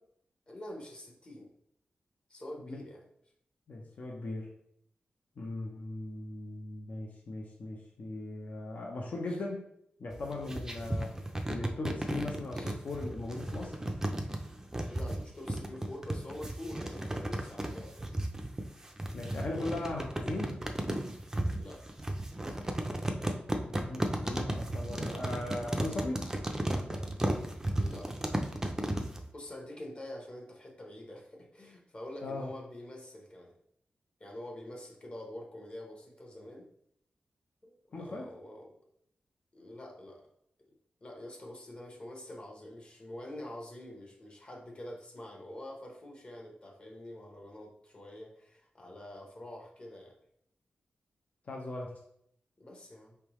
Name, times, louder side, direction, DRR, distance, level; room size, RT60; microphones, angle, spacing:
voice 1, 0.5-1.5 2.3-3.0 9.3-9.4 12.5-12.7 14.9-18.2 21.6-21.8 27.8-28.1 29.3-33.5 34.2-36.7 37.6-38.7 39.5-40.3 41.0-50.2 52.6-53.2, left 1 dB, 35° left, 0 dB, 1.0 m, -46 dB
voice 2, 3.7-4.5 5.4-9.7 10.0-11.1 11.5-13.7 19.1-20.6 23.7-26.3 32.2-32.5 37.9-38.3 51.5-51.9, left 2 dB, 55° left, -1 dB, 0.7 m, -38 dB
sound 1, 10.1-29.2, right 1 dB, 15° right, 0.5 m, -34 dB
4.6 x 3.4 x 3.1 m, 0.70 s
wide cardioid pair, 130°, 3 cm